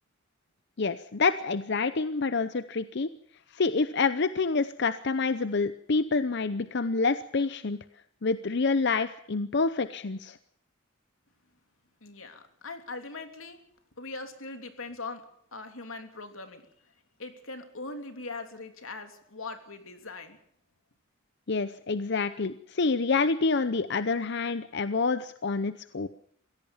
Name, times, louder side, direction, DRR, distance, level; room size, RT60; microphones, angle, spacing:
voice 1, 0.8-3.1 3.5-7.8 8.2-10.4 21.5-26.1, left 4 dB, 60° left, 12 dB, 0.7 m, -27 dB
voice 2, 12.0-13.6 14.0-15.2 15.5-16.6 17.2-20.4, left 3 dB, 90° left, 6 dB, 3.1 m, -41 dB
23.0 x 16.5 x 7.2 m, 0.67 s
head